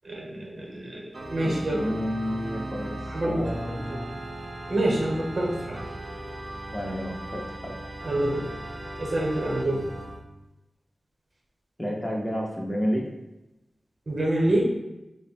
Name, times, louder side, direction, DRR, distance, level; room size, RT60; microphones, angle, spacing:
voice 1, 0.0-1.8 3.1-3.4 4.7-5.8 8.0-8.5 9.0-9.9 14.1-14.7, right 1 dB, 55° right, -2 dB, 0.9 m, -26 dB
Organ, 1.1-10.2, right 1 dB, 35° right, 0.4 m, -38 dB
voice 2, 1.4-4.1 6.7-7.8 11.8-13.1, equal, 10° left, -1 dB, 0.6 m, -31 dB
3.6 x 2.1 x 4.1 m, 0.98 s
wide cardioid pair, 110°, 0 cm